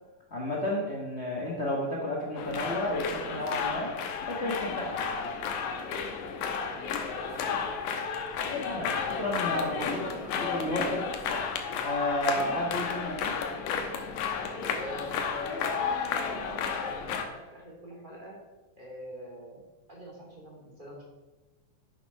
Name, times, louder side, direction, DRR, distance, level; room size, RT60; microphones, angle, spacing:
voice 1, 0.3-3.9 4.3-5.0 8.7-11.1 11.8-13.4, left 1 dB, 45° left, -2 dB, 0.8 m, -32 dB
sound 1, 2.4-17.3, left 6 dB, 85° left, 2.7 m, -32 dB
voice 2, 7.2-8.1 8.8-9.2 14.7-18.4 18.7-19.6 19.9-21.0, equal, 15° right, -3 dB, 2.5 m, -43 dB
10.5 x 8.8 x 5.5 m, 1.2 s
omnidirectional pair, 3.7 m